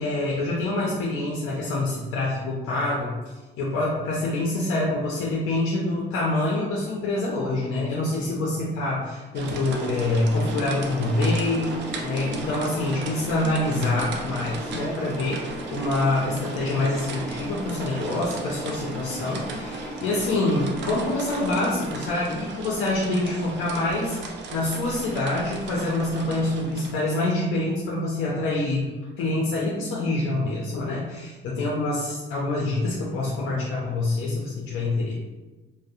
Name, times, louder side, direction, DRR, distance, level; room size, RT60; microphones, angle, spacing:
voice 1, 0.0-3.2 3.6-28.9 29.2-35.1, left 2 dB, 85° left, -4 dB, 0.5 m, -26 dB
sound 1, 9.3-27.3, right 3 dB, 65° right, 0.4 m, -37 dB
sound 2, 9.7-22.1, equal, 5° left, 1.2 m, -37 dB
2.6 x 2.0 x 2.4 m, 1.2 s
cardioid pair, 90°, 20 cm